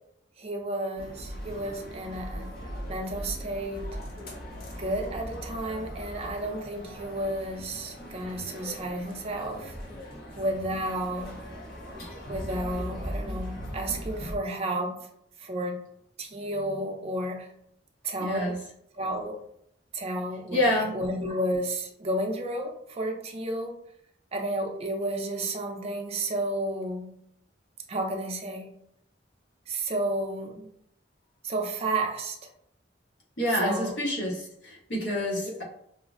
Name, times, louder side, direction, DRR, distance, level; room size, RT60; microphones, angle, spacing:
voice 1, 0.4-2.5 2.9-3.9 4.8-9.8 10.4-11.4 12.3-15.0 15.4-15.8 16.2-17.5 18.0-18.5 18.9-19.4 19.9-23.7 24.3-27.1 27.9-28.7 29.7-30.7 31.4-32.5 33.6-34.0 35.4-35.5, right 1 dB, 35° right, 3 dB, 0.5 m, -32 dB
sound 1, 1.0-14.3, equal, 55° left, 0.7 m, -39 dB
voice 2, 18.2-18.6 20.5-21.0 33.4-35.6, left 1 dB, 75° left, -4 dB, 1.1 m, -28 dB
5.1 x 2.0 x 2.4 m, 0.71 s
head